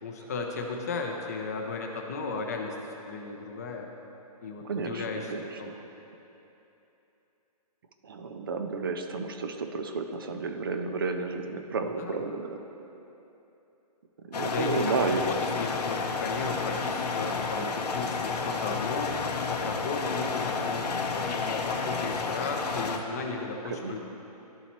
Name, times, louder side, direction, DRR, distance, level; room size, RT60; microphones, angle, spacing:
voice 1, 0.0-3.9 4.4-5.3 5.6-5.7 11.8-12.2 14.4-24.0, left 4 dB, 25° left, 2 dB, 0.5 m, -35 dB
voice 2, 4.6-5.8 8.0-12.6 14.2-15.3 23.6-24.0, right 4 dB, 35° right, 6 dB, 0.4 m, -32 dB
sound 1, 14.3-23.0, left 4 dB, 85° left, 0.7 m, -31 dB
12.0 x 4.1 x 2.9 m, 3.0 s
hypercardioid pair, 170°, 20 cm